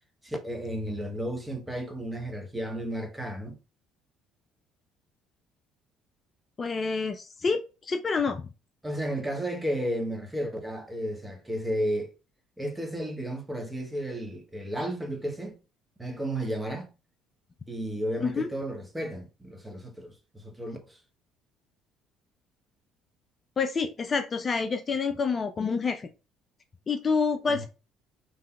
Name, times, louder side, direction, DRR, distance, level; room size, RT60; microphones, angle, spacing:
voice 1, 0.2-3.6 8.8-12.1 12.6-15.6 16.0-16.9 17.7-21.0 27.5-27.7, right 1 dB, 10° right, 0.9 m, -33 dB
voice 2, 6.6-8.4 18.2-18.5 23.6-26.1 26.9-27.7, left 5 dB, 35° left, 0.4 m, -28 dB
3.4 x 2.7 x 2.3 m
hypercardioid pair, 55°, 0 cm